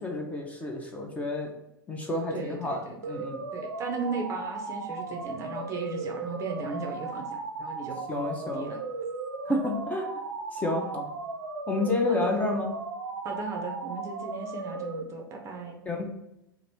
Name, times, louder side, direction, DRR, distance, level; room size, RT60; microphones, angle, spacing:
voice 1, 0.0-1.5 1.9-3.4 8.1-8.7 9.5-10.1 10.5-11.1 11.7-12.7 15.9-16.1, left 2 dB, 10° left, 1 dB, 0.6 m, -30 dB
voice 2, 2.3-3.2 3.5-8.0 8.4-8.8 12.1-12.3 13.2-15.8, right 4 dB, 25° right, 2 dB, 0.6 m, -36 dB
sound 1, 3.0-15.0, right 3 dB, 70° right, 0.5 m, -36 dB
3.0 x 2.6 x 4.4 m, 0.84 s
figure-of-eight pair, 95°, 12 cm